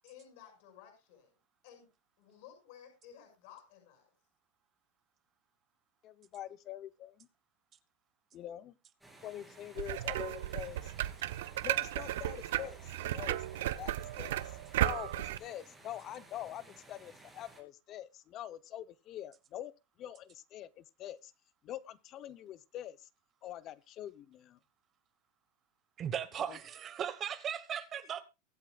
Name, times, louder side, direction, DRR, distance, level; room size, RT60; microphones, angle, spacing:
voice 1, 0.0-1.3 1.6-1.9 2.2-4.1, left 9 dB, 55° left, 6.1 m, -55 dB
voice 2, 6.0-7.3 8.3-8.7 9.2-10.9 11.6-14.4 14.8-19.7 20.0-21.3 21.6-23.1 23.4-24.6 26.5-26.6, left 12 dB, 30° left, 0.8 m, -45 dB
sound 1, 9.0-17.6, right 2 dB, 5° right, 3.0 m, -57 dB
Fingers on Tire Spokes, 9.8-15.4, right 13 dB, 80° right, 0.7 m, -35 dB
voice 3, 26.0-28.2, right 9 dB, 25° right, 1.3 m, -37 dB
23.0 x 8.5 x 2.4 m
supercardioid pair, 165°, 0 cm